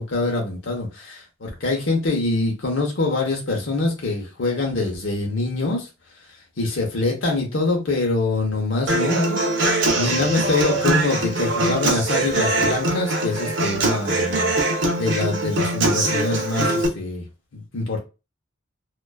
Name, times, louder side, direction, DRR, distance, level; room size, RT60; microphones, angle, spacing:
voice 1, 0.0-5.9 6.6-9.4 9.9-14.5 15.0-17.2 17.5-18.0, left 3 dB, 70° left, 0.8 m, -24 dB
Human voice / Acoustic guitar, 8.9-16.9, right 2 dB, 60° right, 0.6 m, -22 dB
2.4 x 2.2 x 2.3 m
head